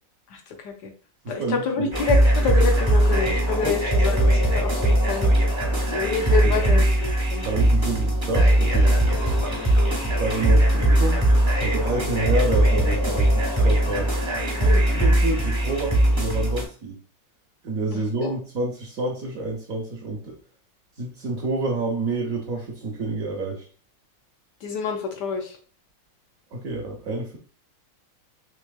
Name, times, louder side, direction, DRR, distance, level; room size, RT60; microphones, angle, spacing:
voice 1, 0.3-0.9 1.3-5.3 5.9-7.5 14.6-14.8 17.9-18.3 24.6-25.6, left 4 dB, 75° left, 3 dB, 1.0 m, -28 dB
voice 2, 1.2-1.9 3.6-3.8 6.4-6.7 7.4-9.0 10.2-11.2 11.6-14.1 14.8-17.0 17.6-20.4 21.0-23.6 26.5-27.4, right 2 dB, 75° right, 0 dB, 0.7 m, -28 dB
sound 1, 1.9-16.6, right 1 dB, 35° right, 0.4 m, -20 dB
4.3 x 3.2 x 2.2 m, 0.40 s
omnidirectional pair, 2.4 m